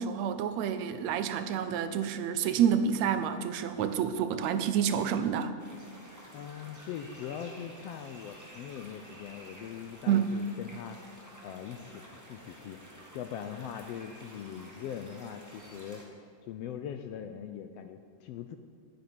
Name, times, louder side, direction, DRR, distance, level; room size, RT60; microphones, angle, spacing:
voice 1, 0.0-5.5 10.1-10.3, right 8 dB, 75° right, 10 dB, 2.0 m, -28 dB
sound 1, 5.6-16.0, equal, 5° right, 1.5 m, -51 dB
voice 2, 6.3-11.0 11.4-16.0 16.5-18.6, left 8 dB, 75° left, 8 dB, 1.5 m, -41 dB
11.5 x 9.2 x 9.8 m, 2.1 s
omnidirectional pair, 3.3 m